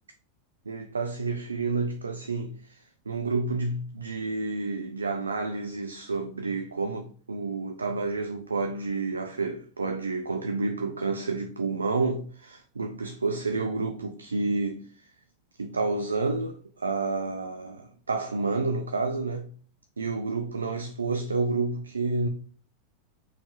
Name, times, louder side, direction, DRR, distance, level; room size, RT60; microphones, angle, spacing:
voice 1, 0.7-15.1 15.6-19.5 20.0-22.3, right 3 dB, 75° right, 0.4 m, -30 dB
4.8 x 3.4 x 2.8 m
figure-of-eight pair, 90°, 0 cm